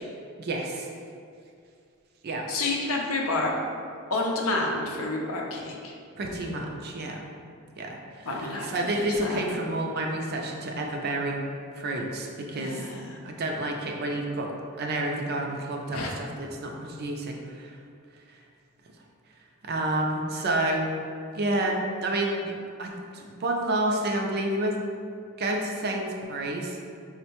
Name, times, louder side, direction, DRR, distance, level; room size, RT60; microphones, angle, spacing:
voice 1, 0.4-0.9 2.2-2.5 6.2-7.2 7.8-11.4 11.8-12.8 13.2-17.8 19.6-20.9 21.3-24.8 25.4-26.8, right 1 dB, 45° right, 1 dB, 0.4 m, -29 dB
voice 2, 2.5-3.5 4.1-5.9 8.3-9.4 12.6-13.2 15.9-16.1, left 2 dB, 70° left, -1 dB, 0.5 m, -29 dB
4.4 x 2.1 x 2.9 m, 2.4 s
head